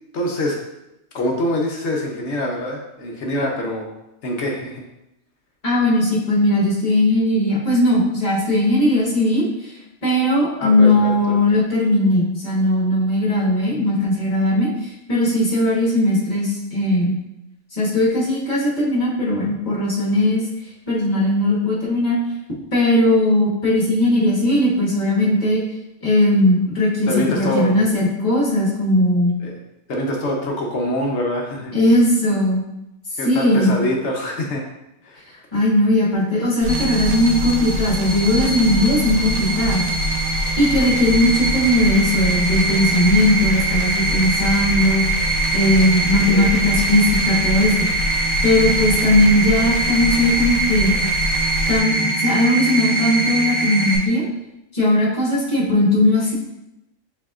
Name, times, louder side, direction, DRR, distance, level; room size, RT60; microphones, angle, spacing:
voice 1, 0.1-0.6 1.1-3.9 4.2-4.8 10.6-11.4 27.1-27.8 29.4-29.6 29.9-31.7 33.2-34.6 35.0-35.2 46.3-46.5, left 1 dB, 60° left, 0 dB, 0.9 m, -24 dB
voice 2, 5.6-9.5 10.0-17.2 17.7-20.4 20.9-22.2 22.7-25.6 26.0-29.3 31.7-32.6 33.2-33.7 35.5-39.9 40.6-45.0 45.5-47.9 48.4-50.9 51.7-54.3 54.7-56.3, left 1 dB, 30° left, -5 dB, 1.3 m, -18 dB
sound 1, 36.6-51.8, left 2 dB, 85° right, 1.0 m, -27 dB
sound 2, 36.7-54.0, right 3 dB, 10° right, 0.7 m, -23 dB
6.9 x 2.7 x 2.4 m, 0.91 s
omnidirectional pair, 1.4 m